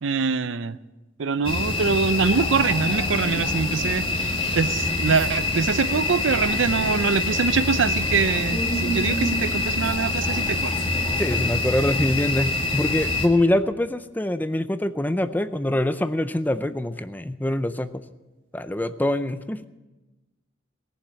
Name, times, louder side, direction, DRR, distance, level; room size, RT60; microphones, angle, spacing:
voice 1, 0.0-0.8 1.2-10.8, right 5 dB, 75° right, 15 dB, 0.5 m, -24 dB
sound 1, 1.4-13.3, left 2 dB, 25° left, 1.7 m, -25 dB
voice 2, 11.2-18.0 18.5-19.6, left 1 dB, 10° left, 12 dB, 0.4 m, -24 dB
19.0 x 7.3 x 8.7 m, 1.1 s
head